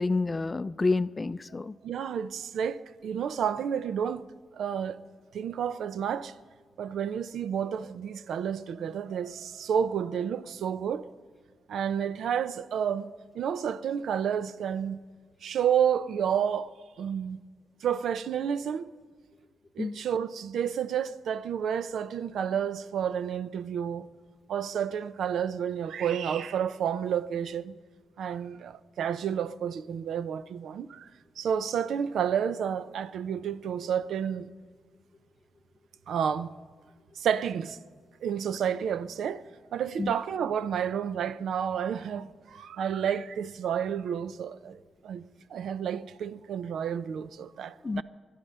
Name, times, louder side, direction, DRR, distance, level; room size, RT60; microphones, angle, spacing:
voice 1, 0.0-1.8 19.8-20.0 40.0-40.1 47.8-48.0, left 3 dB, 30° left, 0.4 m, -28 dB
voice 2, 1.8-4.2 4.5-5.0 5.3-6.3 6.8-11.1 11.7-15.0 15.4-16.7 17.0-17.4 17.8-18.9 19.8-24.1 24.5-27.7 28.2-31.1 31.4-34.5 36.1-36.5 37.1-37.8 38.2-39.4 39.7-48.0, right 8 dB, 80° right, 0.5 m, -30 dB
24.0 x 10.5 x 5.5 m
cardioid pair, 80°, 0 cm